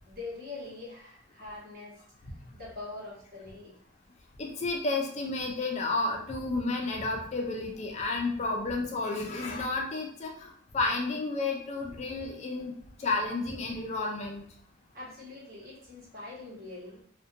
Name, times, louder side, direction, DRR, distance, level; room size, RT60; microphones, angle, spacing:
voice 1, 0.0-2.0 2.3-3.7 14.9-17.0, left 3 dB, 45° right, -7 dB, 1.2 m, -43 dB
voice 2, 4.4-12.7 13.0-14.4, left 3 dB, 35° left, 1 dB, 0.3 m, -31 dB
2.5 x 2.1 x 2.6 m, 0.63 s
head